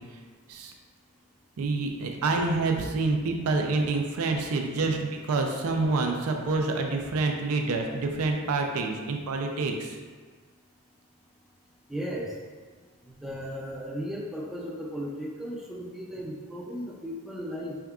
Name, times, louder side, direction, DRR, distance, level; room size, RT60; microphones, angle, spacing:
voice 1, 1.6-10.0, right 3 dB, 80° right, 3 dB, 0.4 m, -27 dB
voice 2, 11.9-12.3 13.1-17.8, equal, ahead, -3 dB, 0.4 m, -36 dB
3.6 x 3.5 x 2.3 m, 1.5 s
head